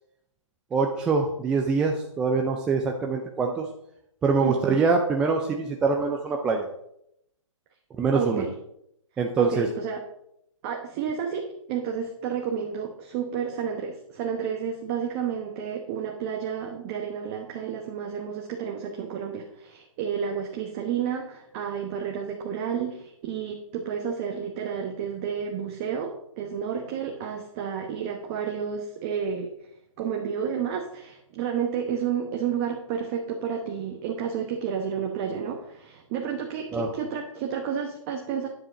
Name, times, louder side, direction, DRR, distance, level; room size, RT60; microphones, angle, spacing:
voice 1, 0.7-3.7 4.2-6.7 8.0-8.4 9.2-9.7 36.7-36.9, right 4 dB, 5° right, 2 dB, 0.3 m, -24 dB
voice 2, 4.4-4.8 8.1-8.6 9.4-10.0 10.6-29.5 30.0-38.5, right 7 dB, 25° right, 2 dB, 1.0 m, -31 dB
9.7 x 7.5 x 5.1 m, 0.76 s
hypercardioid pair, 150°, 17 cm